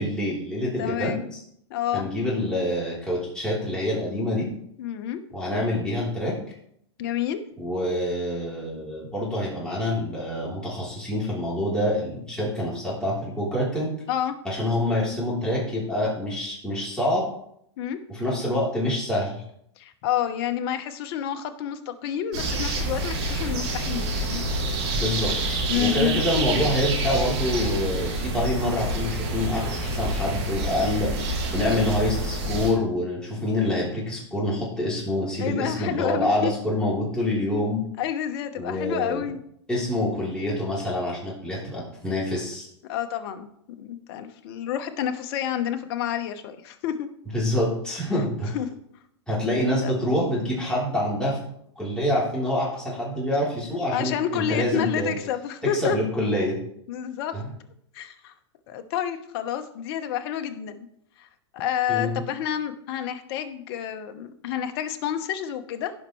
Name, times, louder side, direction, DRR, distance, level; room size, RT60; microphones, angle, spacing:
voice 1, 0.0-1.4 1.9-4.5 5.3-6.4 7.6-13.9 14.4-17.2 18.1-19.4 24.9-37.8 38.6-39.2 39.7-42.7 47.3-48.6 49.3-51.4 51.8-55.1 55.7-56.6 57.3-57.5 61.9-62.2, left 1 dB, 5° left, -6 dB, 3.6 m, -26 dB
voice 2, 0.8-1.2 1.7-2.0 4.8-5.2 7.0-7.4 14.1-14.4 17.8-18.0 19.8-24.4 25.7-26.2 35.4-36.5 38.0-39.4 42.8-43.5 43.8-47.1 48.5-48.7 49.8-49.9 53.9-56.0 56.9-57.3 57.9-58.3 58.7-60.9 61.2-61.3 61.5-65.9, left 10 dB, 55° left, 8 dB, 1.1 m, -29 dB
sound 1, 22.3-32.7, right 1 dB, 70° right, 3.9 m, -27 dB
16.5 x 5.5 x 3.2 m, 0.72 s
hypercardioid pair, 120°, 15 cm